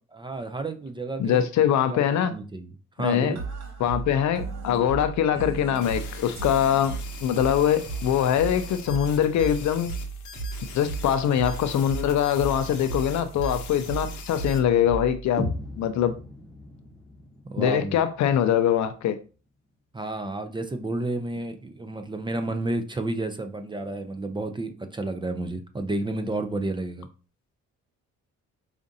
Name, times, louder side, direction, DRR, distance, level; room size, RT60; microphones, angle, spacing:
voice 1, 0.1-1.5 1.9-2.7 3.0-3.4 17.5-18.0 19.9-27.1, right 2 dB, 15° right, 0.4 m, -31 dB
voice 2, 1.2-2.3 3.0-3.4 3.8-9.9 10.7-15.5 15.8-16.2 17.6-19.2, left 9 dB, 70° left, 0.5 m, -23 dB
sound 1, 3.4-15.4, right 4 dB, 60° right, 1.0 m, -35 dB
sound 2, 5.7-14.6, left 6 dB, 85° left, 0.8 m, -43 dB
sound 3, 15.4-19.3, left 1 dB, ahead, 1.0 m, -37 dB
4.9 x 2.5 x 2.7 m
cardioid pair, 90°, 30 cm